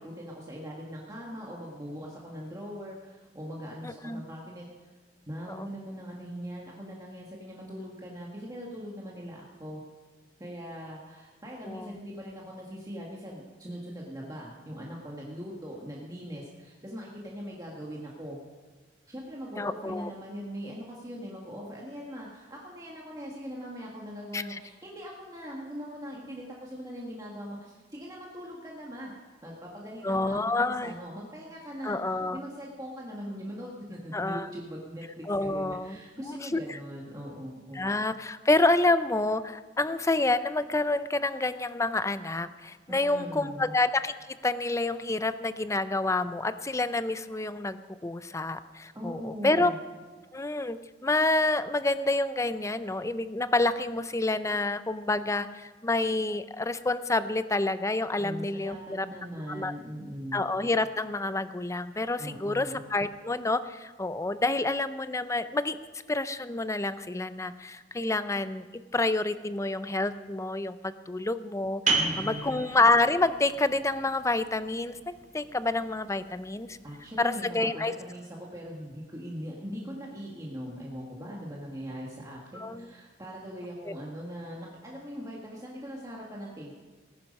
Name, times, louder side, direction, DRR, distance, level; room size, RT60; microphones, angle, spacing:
voice 1, 0.0-4.9 5.3-9.8 10.4-18.4 19.1-29.1 29.4-37.8 42.9-43.7 48.9-49.8 58.2-60.4 62.2-62.8 71.9-72.6 76.8-86.7, equal, 20° right, -3 dB, 1.7 m, -41 dB
voice 2, 3.8-4.2 5.5-5.7 11.7-11.9 19.6-20.1 24.3-24.6 30.0-30.9 31.8-32.4 34.1-34.5 35.3-36.0 36.2-36.6 37.7-49.7 50.3-59.1 59.5-59.7 60.3-65.8 66.1-68.7 68.9-76.8 77.2-77.9 82.6-82.9, left 2 dB, 15° left, 13 dB, 0.5 m, -28 dB
sound 1, 71.9-77.2, right 3 dB, 50° right, 2.5 m, -34 dB
18.5 x 10.5 x 5.3 m, 1.4 s
head